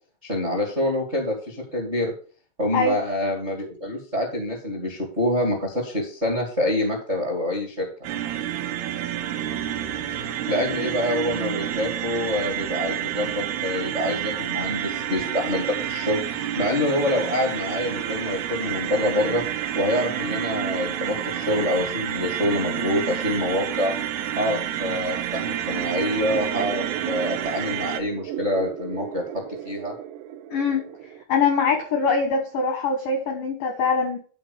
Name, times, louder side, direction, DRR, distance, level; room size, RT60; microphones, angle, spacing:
voice 1, 0.2-2.1 2.6-7.9 10.4-16.2 16.6-19.4 19.7-23.9 24.3-29.2 29.6-29.9, left 1 dB, 40° right, 1 dB, 0.9 m, -26 dB
sound 1, 8.0-28.0, right 10 dB, 70° right, 2.5 m, -29 dB
sound 2, 26.2-31.2, right 10 dB, 90° right, 2.4 m, -36 dB
voice 2, 30.5-30.8 31.3-34.2, left 4 dB, 80° left, 4 dB, 1.9 m, -23 dB
12.0 x 4.5 x 6.9 m, 0.42 s
omnidirectional pair, 5.9 m